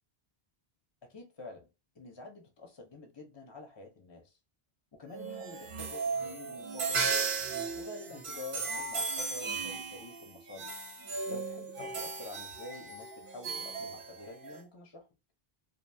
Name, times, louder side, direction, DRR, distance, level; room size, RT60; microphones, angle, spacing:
voice 1, 1.0-1.7 1.9-4.4 4.9-7.1 7.7-10.7 11.3-15.1, left 3 dB, 35° left, 0.5 m, -48 dB
sound 1, 5.1-14.6, right 4 dB, 60° right, 0.8 m, -36 dB
2.5 x 2.3 x 2.5 m
omnidirectional pair, 1.0 m